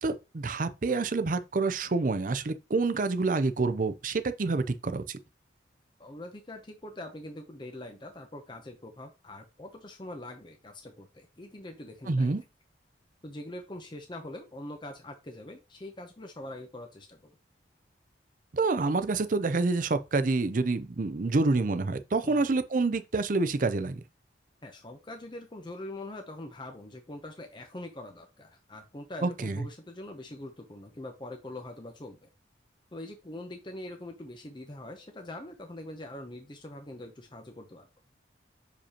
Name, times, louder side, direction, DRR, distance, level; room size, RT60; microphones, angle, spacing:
voice 1, 0.0-5.2 12.1-12.4 18.5-24.0 29.2-29.6, right 3 dB, 45° right, 0.5 m, -27 dB
voice 2, 6.0-12.4 13.2-17.3 22.3-22.5 24.6-32.3 32.9-37.9, left 1 dB, 25° left, 0.7 m, -43 dB
6.6 x 5.1 x 2.9 m
head